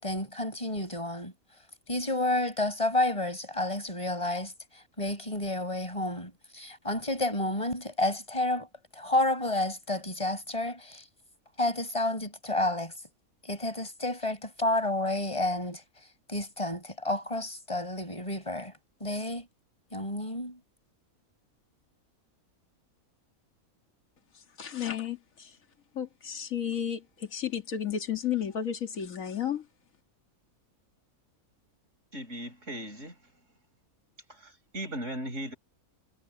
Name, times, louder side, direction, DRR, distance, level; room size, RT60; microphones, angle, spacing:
voice 1, 0.0-1.3 1.9-4.5 5.0-8.7 8.9-11.0 11.6-12.9 13.4-15.8 16.3-18.7 19.0-19.5 19.9-20.6, left 1 dB, 20° left, 5.5 m, -30 dB
voice 2, 24.6-25.5 26.0-29.6, left 9 dB, 65° left, 2.3 m, -32 dB
voice 3, 32.1-33.2 34.3-35.5, equal, 55° right, 5.2 m, -38 dB
omnidirectional pair, 1.5 m